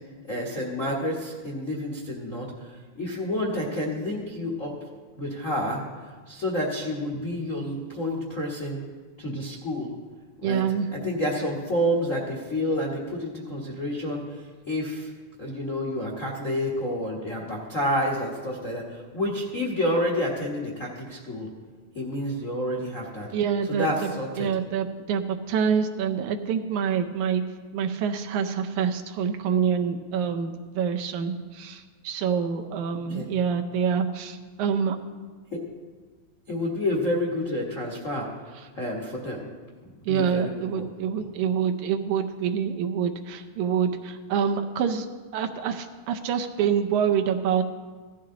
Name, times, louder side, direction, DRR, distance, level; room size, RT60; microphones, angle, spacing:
voice 1, 0.3-2.5 3.0-4.7 5.2-5.8 6.3-8.8 9.2-9.9 10.4-10.6 11.0-14.2 14.7-15.1 15.4-21.5 21.9-23.3 23.8-24.5 33.1-33.3 35.5-35.6 36.5-38.3 38.8-39.4 40.1-40.5 40.8-40.9, left 1 dB, 50° left, -2 dB, 0.9 m, -29 dB
voice 2, 10.4-10.9 23.3-24.1 24.4-27.4 27.7-35.0 40.1-45.1 45.3-47.6, right 7 dB, 75° right, 5 dB, 2.0 m, -26 dB
16.0 x 12.5 x 3.8 m, 1.4 s
omnidirectional pair, 3.7 m